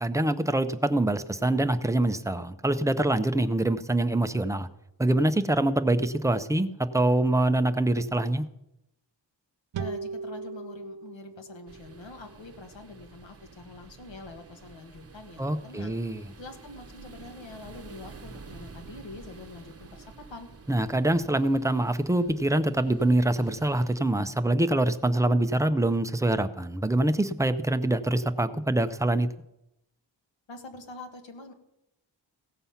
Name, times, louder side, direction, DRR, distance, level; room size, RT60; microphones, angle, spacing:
voice 1, 0.0-4.7 5.0-8.5 15.4-16.2 20.7-29.3, right 1 dB, 5° right, 9 dB, 0.4 m, -25 dB
sound 1, 9.7-13.1, right 5 dB, 75° right, 0.8 m, -39 dB
voice 2, 9.8-15.9 16.4-20.5 30.5-31.5, left 3 dB, 75° left, 6 dB, 1.5 m, -45 dB
sound 2, 11.7-24.0, right 4 dB, 30° right, 0.9 m, -49 dB
16.5 x 7.0 x 5.7 m, 0.86 s
wide cardioid pair, 150°, 45 cm